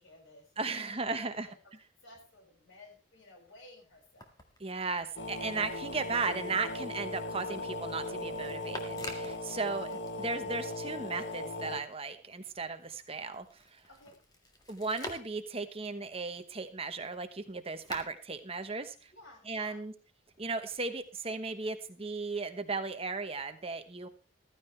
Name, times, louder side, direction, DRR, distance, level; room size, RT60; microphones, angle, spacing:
voice 1, 0.0-1.5 2.0-4.4 9.6-9.7 13.9-14.2 19.1-19.8, left 1 dB, 80° left, 1 dB, 6.3 m, -56 dB
voice 2, 0.6-1.5 4.6-13.8 14.7-19.1 19.5-19.9 20.4-24.1, right 4 dB, 30° right, 9 dB, 1.1 m, -36 dB
sound 1, 3.9-10.9 11.3-19.4 20.3-21.0, left 1 dB, 20° left, 1.9 m, -50 dB
sound 2, 5.2-11.8, left 2 dB, 60° left, 1.0 m, -38 dB
14.5 x 14.0 x 3.3 m, 0.34 s
head